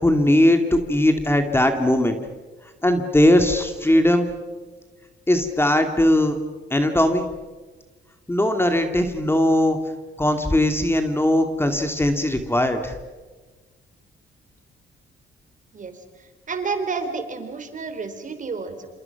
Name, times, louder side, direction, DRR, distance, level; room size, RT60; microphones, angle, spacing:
voice 1, 0.0-2.2 2.8-4.3 5.3-6.4 6.7-7.2 8.3-9.8 10.2-12.9, left 1 dB, 10° left, 6 dB, 2.4 m, -19 dB
voice 2, 15.7-18.9, right 4 dB, 40° right, 8 dB, 4.0 m, -30 dB
27.5 x 27.5 x 5.9 m, 1.3 s
cardioid pair, 90°, 20 cm